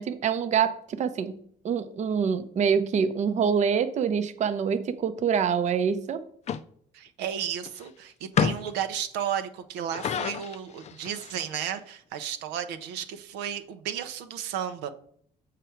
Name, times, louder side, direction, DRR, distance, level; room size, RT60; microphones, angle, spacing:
voice 1, 0.0-1.4 1.6-6.2, right 7 dB, 45° right, 10 dB, 0.6 m, -25 dB
sound 1, 6.5-6.6 7.7-7.8 8.4-8.8 9.8-11.5, left 7 dB, 40° left, 0.4 m, -29 dB
voice 2, 6.9-14.9, right 9 dB, 90° right, 9 dB, 0.7 m, -33 dB
6.7 x 5.0 x 4.5 m, 0.62 s
cardioid pair, 110°, 17 cm